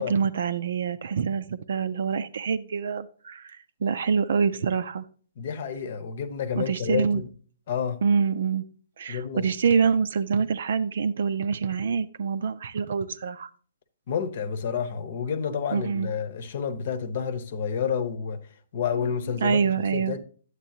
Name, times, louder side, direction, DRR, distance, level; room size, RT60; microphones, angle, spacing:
voice 1, 0.0-5.1 6.6-7.2 8.0-8.6 9.0-13.5 15.7-16.1 19.4-20.2, right 6 dB, 60° right, 0.5 m, -26 dB
voice 2, 5.4-7.3 7.7-8.0 9.1-9.5 14.1-18.4 18.7-20.2, left 7 dB, 50° left, 0.9 m, -29 dB
9.7 x 8.2 x 2.8 m
figure-of-eight pair, 125°, 0 cm